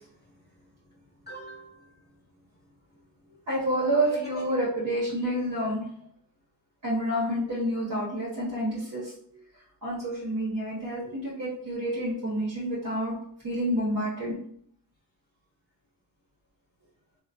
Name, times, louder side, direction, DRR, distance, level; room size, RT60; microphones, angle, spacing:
voice 1, 0.0-2.2 2.9-3.0 4.1-4.4 5.2-5.7 7.4-7.5, right 1 dB, 25° left, -4 dB, 0.6 m, -45 dB
voice 2, 3.5-5.9 6.8-9.4 9.8-13.2 13.4-14.3, right 1 dB, 50° right, -6 dB, 1.0 m, -29 dB
3.0 x 2.2 x 2.4 m, 0.65 s
cardioid pair, 65°, 42 cm